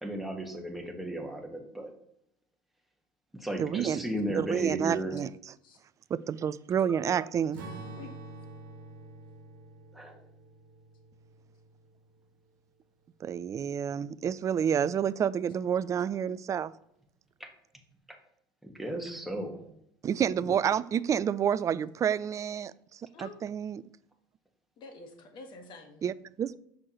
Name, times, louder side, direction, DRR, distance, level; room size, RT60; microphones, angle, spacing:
voice 1, 0.0-1.9 3.3-5.2 6.8-7.1 9.9-10.2 17.4-17.5 18.6-19.6, right 1 dB, ahead, 1.4 m, -35 dB
voice 2, 3.6-4.0 4.3-5.3 6.1-7.6 13.2-16.7 20.0-23.8 26.0-26.6, right 8 dB, 30° right, 0.3 m, -29 dB
Strum, 7.5-12.2, right 2 dB, 80° right, 1.2 m, -47 dB
voice 3, 19.3-19.7 23.1-23.4 24.8-26.0, left 3 dB, 50° left, 1.5 m, -48 dB
6.3 x 6.1 x 3.0 m
hypercardioid pair, 80°, 10 cm